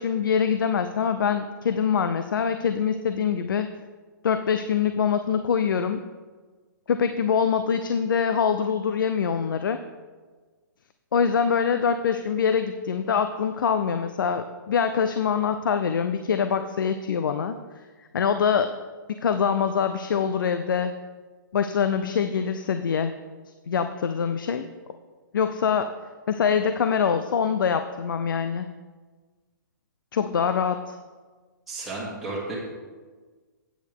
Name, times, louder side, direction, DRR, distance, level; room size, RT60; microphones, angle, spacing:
voice 1, 0.0-3.7 4.2-6.0 6.9-9.8 11.1-17.6 18.1-18.7 19.2-20.9 21.5-23.1 23.7-24.7 25.3-25.9 26.3-28.7 30.1-31.0, left 7 dB, 75° left, 9 dB, 0.6 m, -24 dB
voice 2, 31.7-32.6, right 2 dB, 5° right, -10 dB, 2.8 m, -33 dB
12.0 x 8.8 x 3.6 m, 1.4 s
hypercardioid pair, 140°, 11 cm